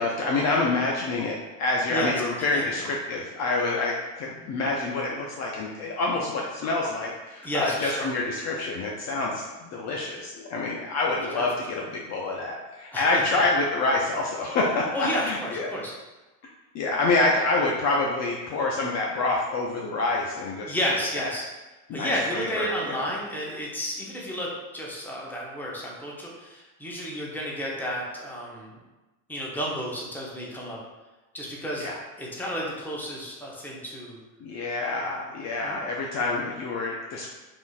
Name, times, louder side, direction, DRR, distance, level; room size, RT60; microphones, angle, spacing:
voice 1, 0.0-15.7 16.7-20.7 21.2-21.3 21.9-23.1 31.8-32.0 34.4-37.3, left 3 dB, 40° left, -2 dB, 0.5 m, -27 dB
voice 2, 1.9-2.6 7.4-8.1 11.1-11.5 12.9-13.4 14.9-15.9 17.2-17.3 20.7-21.4 21.9-28.8 29.3-30.8 31.3-31.9 32.2-34.2 34.9-35.2 35.6-35.8, equal, 5° left, -4 dB, 0.7 m, -32 dB
3.6 x 2.5 x 2.3 m, 1.1 s
hypercardioid pair, 90°, 43 cm